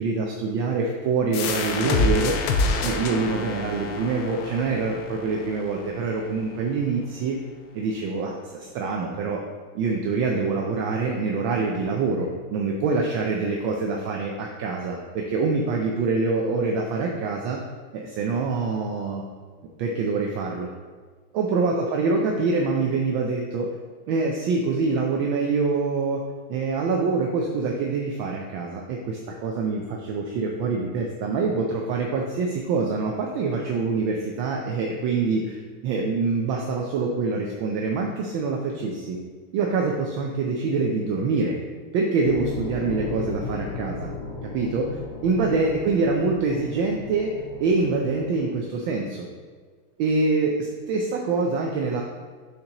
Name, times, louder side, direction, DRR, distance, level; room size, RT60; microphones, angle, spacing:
voice 1, 0.0-2.4 2.8-7.4 7.7-9.4 9.7-17.6 17.9-19.2 19.8-20.7 21.3-23.7 24.1-26.2 26.5-39.2 39.5-41.6 41.9-44.1 44.5-47.3 47.6-49.3 50.0-52.0, right 4 dB, 75° right, 0 dB, 1.3 m, -25 dB
sound 1, 1.3-6.7, left 3 dB, 85° left, 1.5 m, -28 dB
sound 2, 42.2-48.4, left 3 dB, 70° left, 2.1 m, -35 dB
6.8 x 5.3 x 2.9 m, 1.5 s
omnidirectional pair, 2.3 m